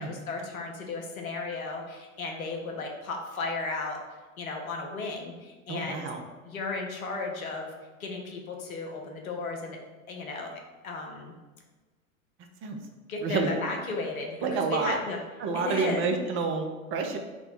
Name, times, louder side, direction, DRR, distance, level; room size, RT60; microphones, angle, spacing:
voice 1, 0.0-4.0 4.4-6.1 6.4-7.7 8.0-9.8 10.1-11.3 13.1-15.2 15.5-16.0, left 3 dB, 75° left, 2 dB, 0.9 m, -34 dB
voice 2, 5.7-6.2 12.6-12.8 13.2-13.6 14.4-15.0 15.4-17.2, right 4 dB, 30° right, 4 dB, 0.6 m, -29 dB
4.3 x 2.2 x 4.2 m, 1.3 s
figure-of-eight pair, 90°, 42 cm